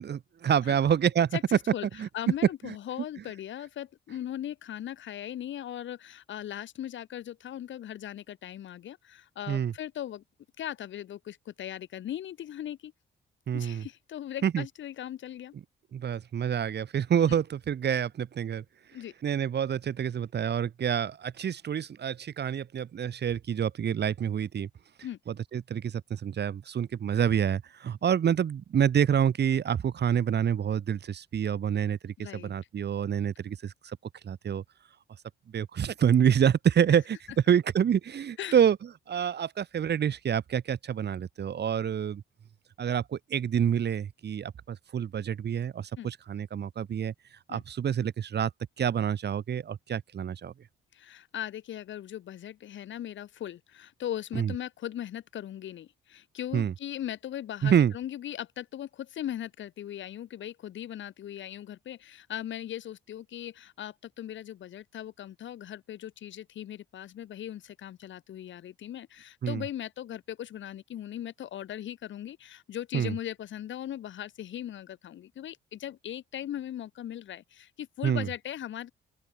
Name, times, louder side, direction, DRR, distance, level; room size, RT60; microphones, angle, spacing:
voice 1, 0.0-1.4 2.0-2.1 2.6-2.7 9.5-9.7 13.5-13.9 14.4-14.6 15.9-18.6 19.2-24.7 25.5-34.0 34.2-34.6 35.5-37.2 37.5-38.8 39.1-42.2 42.8-47.1 47.5-48.5 48.8-50.5 54.4-54.5 56.5-56.7 57.6-57.9 69.4-69.6 72.9-73.1 78.0-78.3, right 8 dB, 55° right, 7.1 m, -27 dB
voice 2, 1.3-1.9 2.1-10.2 10.6-12.9 13.5-15.5 17.3-17.4 18.9-19.1 25.0-25.2 32.2-32.5 38.4-38.6 46.0-46.1 47.5-47.6 50.9-78.9, left 11 dB, 70° left, 5.3 m, -39 dB
open air
cardioid pair, 90°, 20 cm